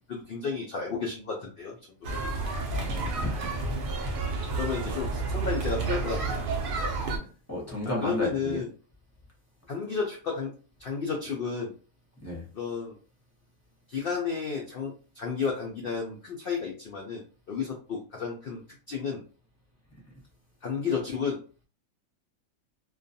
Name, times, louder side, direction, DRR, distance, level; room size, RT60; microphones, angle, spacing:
voice 1, 0.1-1.7 2.2-2.3 4.5-6.4 8.0-8.7 9.7-10.5 10.8-11.7 12.5-13.0 13.9-18.6 18.9-19.2 20.6-21.4, left 5 dB, 75° left, 0.5 m, -32 dB
sound 1, 2.0-7.2, right 3 dB, 60° right, 0.5 m, -30 dB
voice 2, 2.7-3.7 7.1-8.6 12.2-12.5, left 1 dB, 15° left, 0.6 m, -34 dB
2.4 x 2.2 x 2.6 m
omnidirectional pair, 1.5 m